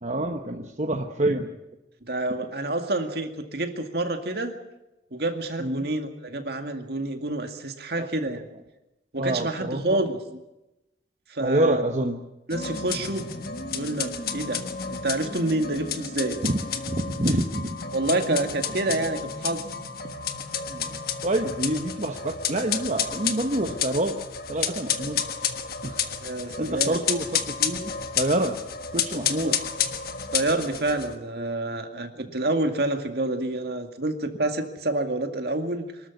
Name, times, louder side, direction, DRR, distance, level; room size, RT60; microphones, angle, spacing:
voice 1, 0.0-1.5 5.6-5.9 8.0-8.1 9.1-10.1 11.4-12.2 16.4-16.6 16.9-17.8 18.3-18.4 20.7-24.2 24.5-25.3 25.8-26.0 26.4-28.6 28.9-29.6, right 1 dB, 40° right, 4 dB, 1.1 m, -27 dB
voice 2, 2.1-4.6 5.1-8.4 9.1-10.2 11.3-11.8 12.5-13.3 13.7-16.4 17.9-19.7 26.2-27.0 29.4-29.6 30.3-35.8, right 2 dB, 60° right, 6 dB, 2.1 m, -28 dB
sound 1, 12.5-31.2, left 7 dB, 55° left, 1.5 m, -31 dB
24.0 x 13.0 x 9.7 m, 0.97 s
head